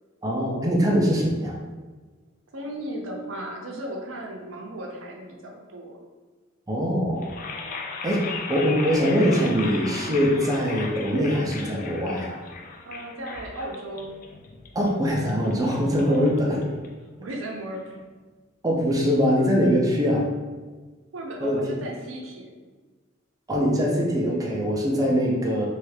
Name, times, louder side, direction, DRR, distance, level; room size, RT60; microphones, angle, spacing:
voice 1, 0.2-1.6 6.7-7.3 8.0-12.4 14.7-16.8 18.6-20.3 21.4-21.6 23.5-25.7, equal, 20° right, -2 dB, 0.5 m, -23 dB
voice 2, 2.5-6.0 12.8-14.2 16.0-16.3 17.2-18.0 21.1-22.6, right 1 dB, 75° right, 1 dB, 0.6 m, -36 dB
sound 1, 7.2-17.2, left 4 dB, 40° left, 0.3 m, -37 dB
3.1 x 2.4 x 3.2 m, 1.3 s
head